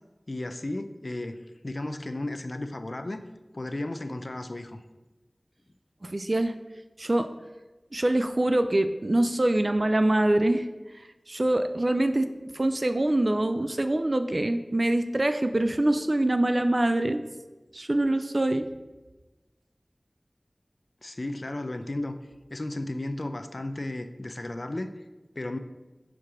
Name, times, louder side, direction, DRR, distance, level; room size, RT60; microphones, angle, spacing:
voice 1, 0.3-3.2 3.5-4.8 21.0-22.2 22.5-24.9 25.4-25.6, left 1 dB, 55° left, 8 dB, 0.4 m, -34 dB
voice 2, 6.0-6.6 7.0-7.3 7.9-10.7 11.3-17.2 17.7-18.7, right 1 dB, 50° right, 9 dB, 0.3 m, -24 dB
6.1 x 4.6 x 3.6 m, 1.1 s
wide cardioid pair, 45°, 0 cm